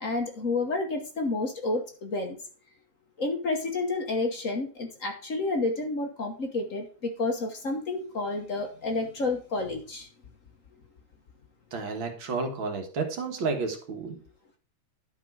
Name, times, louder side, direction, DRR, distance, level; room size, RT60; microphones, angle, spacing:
voice 1, 0.0-2.4 3.2-10.1, left 3 dB, 45° left, 4 dB, 1.4 m, -30 dB
voice 2, 11.7-14.2, right 4 dB, 75° right, 4 dB, 2.4 m, -31 dB
11.5 x 4.9 x 4.7 m, 0.40 s
omnidirectional pair, 2.2 m